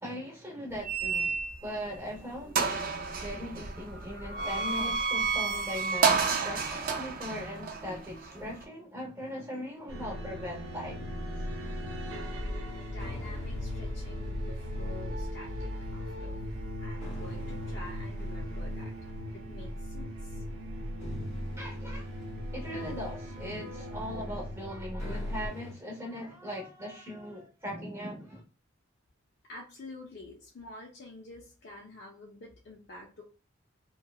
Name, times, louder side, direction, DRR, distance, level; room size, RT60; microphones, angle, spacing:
voice 1, 0.0-2.9 3.2-11.5 21.6-22.1 22.5-28.4, equal, 15° right, 0.8 m, -40 dB
sound 1, 0.8-1.8 2.2-2.3 2.5-8.6, right 5 dB, 45° right, 0.4 m, -30 dB
sound 2, 9.9-25.5, equal, 90° right, 0.6 m, -38 dB
sound 3, 10.9-25.7, left 1 dB, 35° left, 0.9 m, -46 dB
voice 2, 12.7-16.4 16.8-18.9 19.3-20.4 29.5-33.2, left 2 dB, 55° left, 0.5 m, -48 dB
2.8 x 2.2 x 2.3 m
head